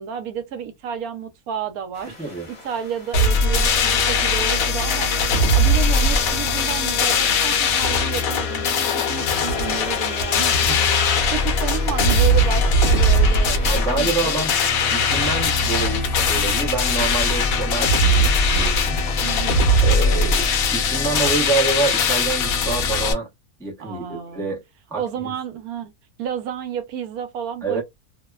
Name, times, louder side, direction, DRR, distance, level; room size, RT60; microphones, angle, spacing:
voice 1, 0.0-2.3 2.6-5.1 5.5-14.3 19.2-19.6 23.8-24.5 24.9-25.9 26.2-27.8, right 8 dB, 75° right, 1.0 m, -31 dB
sound 1, 1.9-21.0, left 2 dB, 35° left, 0.8 m, -39 dB
sound 2, 3.1-23.1, left 2 dB, 70° left, 1.0 m, -20 dB
voice 2, 13.7-14.5 14.9-19.0 19.8-23.3 23.6-24.6 24.9-25.3 27.6-27.8, right 4 dB, 5° left, 0.4 m, -27 dB
2.7 x 2.0 x 2.2 m
omnidirectional pair, 1.6 m